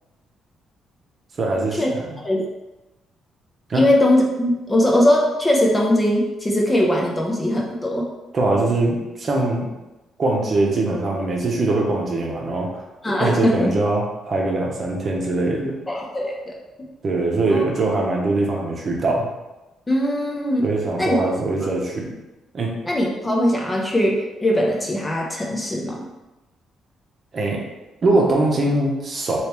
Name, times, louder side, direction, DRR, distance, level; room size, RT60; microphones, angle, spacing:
voice 1, 1.4-2.1 3.7-3.8 8.3-9.7 10.2-12.8 13.2-15.8 17.0-19.3 20.6-22.1 22.5-22.7 27.3-27.6 28.0-29.4, right 2 dB, 45° right, -1 dB, 0.8 m, -22 dB
voice 2, 3.7-8.1 13.0-13.7 15.9-16.5 17.5-17.6 19.9-20.7 21.0-21.2 22.8-26.1, left 1 dB, 20° left, -1 dB, 0.7 m, -20 dB
3.3 x 3.1 x 3.0 m, 1.0 s
cardioid pair, 90°, 0 cm